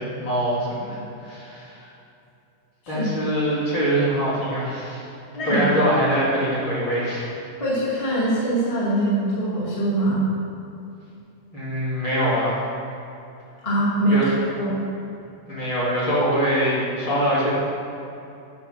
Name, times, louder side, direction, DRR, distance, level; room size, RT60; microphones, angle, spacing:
voice 1, 0.0-1.9 2.9-5.0 5.5-7.3 11.5-12.6 14.1-14.2 15.5-17.5, equal, 40° left, -9 dB, 2.2 m, -23 dB
voice 2, 5.3-5.7 7.6-10.2 13.6-14.7, right 1 dB, 15° left, -9 dB, 1.1 m, -23 dB
8.6 x 4.9 x 6.2 m, 2.7 s
omnidirectional pair, 4.1 m